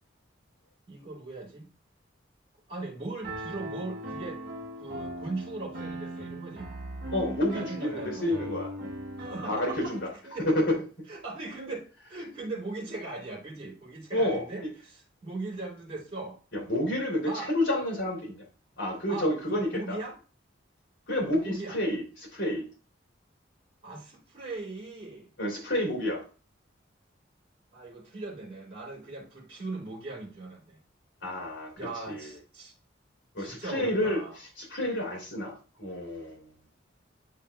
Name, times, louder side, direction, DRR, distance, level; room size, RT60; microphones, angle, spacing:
voice 1, 0.9-1.7 2.7-4.4 4.8-6.7 7.5-8.3 9.2-9.9 10.2-10.5 11.1-16.4 17.2-17.5 19.1-20.2 21.4-21.8 23.8-25.3 27.7-30.8 31.8-32.7 33.4-34.4, right 2 dB, 30° right, -6 dB, 3.0 m, -39 dB
Piano, 3.2-10.1, right 1 dB, 50° right, 1.4 m, -39 dB
voice 2, 7.1-8.7 9.4-10.1 10.4-10.8 14.1-14.7 16.5-18.4 18.8-20.0 21.1-22.6 25.4-26.2 31.2-32.3 33.3-34.2 34.6-36.4, left 1 dB, 75° left, 0 dB, 2.7 m, -29 dB
10.0 x 4.9 x 2.2 m, 0.36 s
head